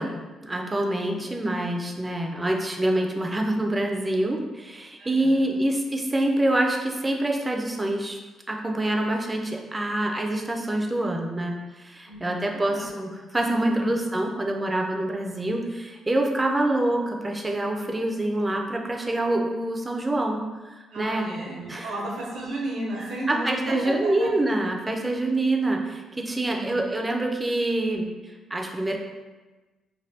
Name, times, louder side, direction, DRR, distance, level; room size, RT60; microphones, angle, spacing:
voice 1, 0.0-8.2 8.5-21.3 21.7-21.9 23.3-28.1 28.5-29.0, right 1 dB, 15° right, 1 dB, 0.4 m, -26 dB
voice 2, 5.0-5.6 12.0-12.9 13.6-14.0 20.9-24.3 26.4-26.9, right 1 dB, 85° right, -5 dB, 0.8 m, -34 dB
3.3 x 2.2 x 2.7 m, 1.3 s
cardioid pair, 90°, 0 cm